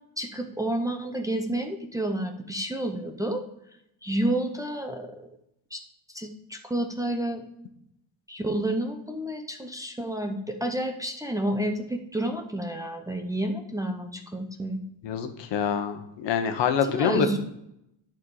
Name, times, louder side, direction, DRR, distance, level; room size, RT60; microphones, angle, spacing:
voice 1, 0.2-3.4 4.0-5.3 5.7-5.8 6.1-7.5 8.3-14.8 16.9-17.4, right 1 dB, 10° right, 2 dB, 0.6 m, -30 dB
voice 2, 15.0-17.4, left 7 dB, 70° left, 8 dB, 1.1 m, -26 dB
10.0 x 4.5 x 4.8 m, 0.80 s
cardioid pair, 150°, 45 cm